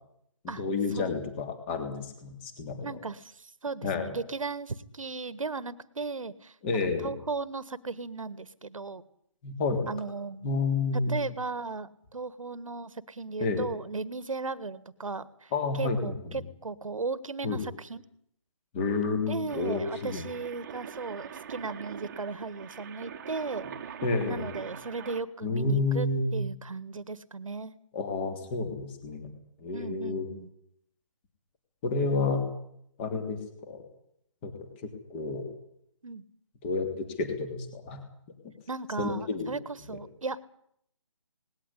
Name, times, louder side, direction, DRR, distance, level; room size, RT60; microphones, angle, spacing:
voice 1, 0.4-3.0 3.8-4.1 6.6-7.1 9.4-9.9 10.4-11.2 13.4-13.7 15.5-16.2 17.4-17.6 18.7-20.2 24.0-24.5 25.4-26.3 27.9-29.3 29.6-30.3 31.8-32.5 33.0-33.8 34.4-34.5 34.8-35.4 36.6-38.0 39.0-39.5, left 3 dB, 20° left, 7 dB, 3.2 m, -30 dB
voice 2, 2.8-9.0 9.9-10.5 11.1-15.5 15.8-18.0 19.2-23.6 24.3-27.7 29.7-30.5 36.0-36.2 38.7-40.4, right 4 dB, 75° right, 17 dB, 1.6 m, -36 dB
sound 1, 19.5-25.2, right 8 dB, 30° right, 1.6 m, -43 dB
19.5 x 17.5 x 9.9 m, 0.71 s
figure-of-eight pair, 160°, 17 cm